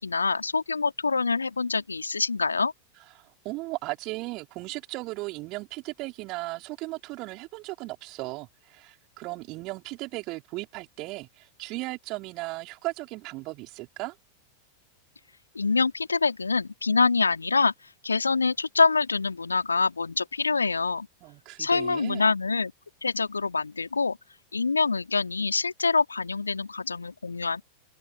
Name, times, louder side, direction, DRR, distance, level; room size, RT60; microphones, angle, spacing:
voice 1, 0.0-2.7 15.6-17.7 18.0-21.1 21.6-22.7 23.0-24.2 24.5-27.6, left 4 dB, 75° left, 3.3 m, -25 dB
voice 2, 3.2-14.2 21.2-22.3, right 22 dB, 40° right, 5.5 m, -36 dB
open air
figure-of-eight pair, 90°, 0 cm